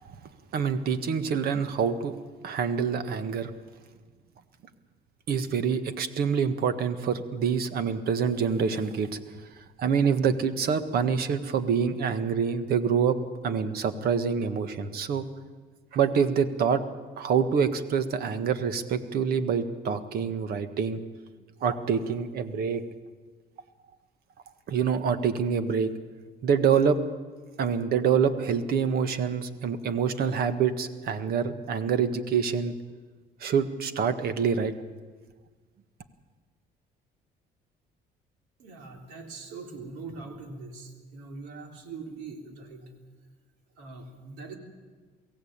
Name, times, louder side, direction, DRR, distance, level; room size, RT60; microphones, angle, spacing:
voice 1, 0.5-2.1 2.4-3.5 5.3-9.2 9.6-13.2 13.4-15.3 15.9-16.8 17.2-21.0 21.6-22.8 24.7-25.9 26.4-27.0 27.6-32.7 33.4-34.7, right 6 dB, 65° right, 11 dB, 1.6 m, -26 dB
voice 2, 38.6-42.9 43.8-44.6, right 4 dB, 90° right, 3 dB, 3.3 m, -42 dB
23.0 x 16.0 x 8.8 m, 1.4 s
cardioid pair, 110°, 17 cm